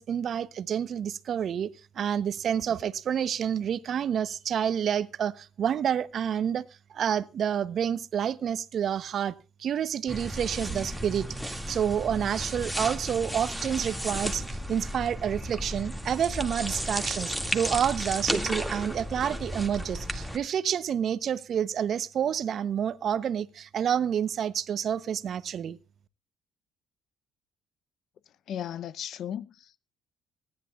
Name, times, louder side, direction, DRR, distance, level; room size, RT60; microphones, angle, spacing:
voice 1, 0.0-6.6 6.9-25.8, right 8 dB, 60° right, 0.8 m, -29 dB
sound 1, 10.1-20.4, equal, ahead, 2.1 m, -34 dB
voice 2, 28.5-29.8, left 10 dB, 65° left, 0.6 m, -36 dB
26.0 x 11.0 x 2.4 m
supercardioid pair, 65°, 0 cm